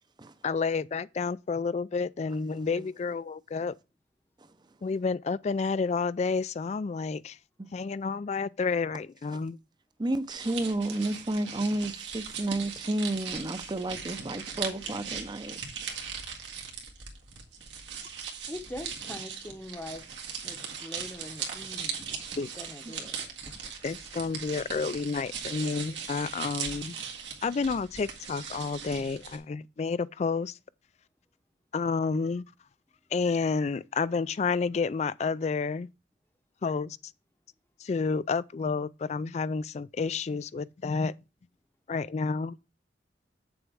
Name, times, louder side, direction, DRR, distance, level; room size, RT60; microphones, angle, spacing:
voice 1, 0.4-3.7 4.8-7.4 7.7-9.6 22.4-22.5 23.8-27.0 27.4-30.6 31.7-32.5 33.1-35.9 36.6-37.0 37.8-41.1 41.9-42.6, left 4 dB, 40° left, 0.3 m, -30 dB
voice 2, 10.0-15.6 22.1-22.4 22.9-23.0 23.6-23.7, right 1 dB, 25° right, 0.6 m, -31 dB
sound 1, 10.3-29.4, right 6 dB, 85° right, 1.8 m, -39 dB
voice 3, 18.5-20.0 20.4-22.1 22.6-23.2, left 1 dB, 10° left, 0.8 m, -42 dB
8.5 x 7.0 x 3.5 m
head